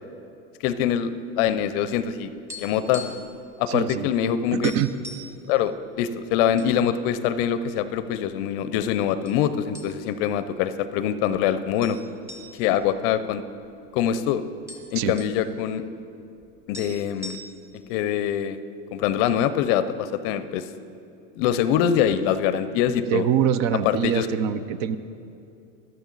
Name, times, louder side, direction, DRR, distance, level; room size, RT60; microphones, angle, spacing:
voice 1, 0.6-2.3 2.6-3.1 3.6-4.7 5.5-12.0 12.5-13.4 13.9-14.4 14.9-15.8 16.7-17.4 17.9-18.6 18.9-20.6 21.4-23.3 23.8-24.3, left 9 dB, 45° left, 12 dB, 0.6 m, -24 dB
sound 1, 2.5-3.4 3.6-3.8 4.2-4.3 4.6-5.4 6.0-6.7 7.1-7.2 7.9-8.6 9.2-9.4 9.7-10.3 10.6-10.7 11.8-13.9 14.2-14.3 14.5-15.4 16.4-16.5 16.7-17.8, left 1 dB, 5° right, 2.0 m, -41 dB
voice 2, 3.7-4.1 4.5-4.9 15.0-15.2 23.1-25.0, right 9 dB, 45° right, 14 dB, 0.7 m, -24 dB
13.5 x 12.0 x 4.0 m, 2.6 s
hypercardioid pair, 120°, 40 cm